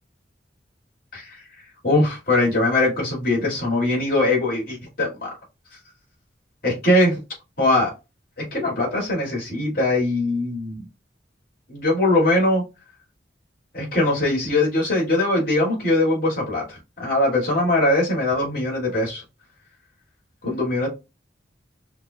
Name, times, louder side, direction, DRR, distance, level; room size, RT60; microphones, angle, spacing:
voice 1, 1.1-1.4 1.8-5.3 6.6-7.2 7.6-7.9 8.4-10.8 11.7-12.6 13.7-19.2 20.4-20.9, left 2 dB, 50° left, -3 dB, 2.3 m, -21 dB
5.8 x 2.4 x 2.3 m, 0.25 s
head